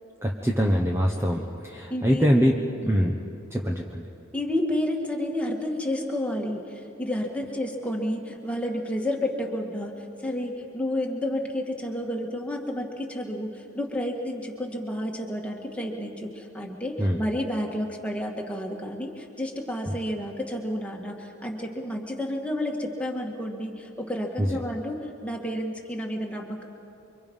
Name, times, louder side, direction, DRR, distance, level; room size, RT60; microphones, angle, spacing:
voice 1, 0.2-2.6 2.8-3.2 3.5-4.1 17.0-17.2 19.9-20.0 24.4-24.6, equal, 10° right, 0 dB, 1.1 m, -24 dB
voice 2, 1.9-2.3 2.7-2.9 4.3-9.9 10.2-25.0 25.2-26.7, left 1 dB, 5° left, 0 dB, 2.2 m, -30 dB
29.0 x 24.5 x 5.6 m, 2.7 s
head